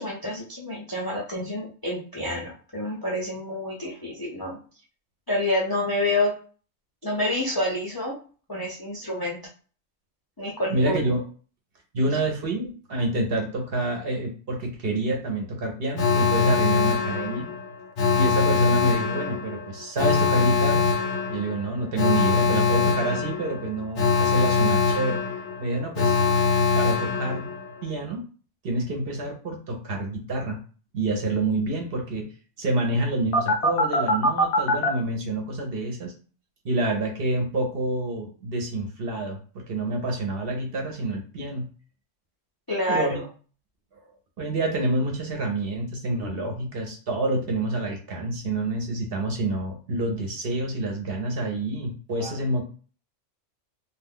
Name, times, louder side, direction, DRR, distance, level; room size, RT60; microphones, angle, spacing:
voice 1, 0.0-4.6 5.3-6.3 7.0-8.2 8.5-9.4 10.4-11.0 42.7-43.2 52.2-52.3, left 1 dB, 35° left, -4 dB, 0.3 m, -28 dB
voice 2, 10.7-11.2 11.9-17.5 18.1-20.9 21.3-25.2 25.6-26.2 26.7-27.5 27.8-28.2 28.6-30.6 30.9-32.3 32.6-36.1 36.6-41.6 42.9-43.2 44.0-44.1 44.4-52.6, right 2 dB, 55° right, 2 dB, 0.8 m, -28 dB
Alarm, 16.0-27.9 33.3-34.9, left 5 dB, 65° left, 0.8 m, -23 dB
2.4 x 2.3 x 3.5 m, 0.39 s
omnidirectional pair, 1.3 m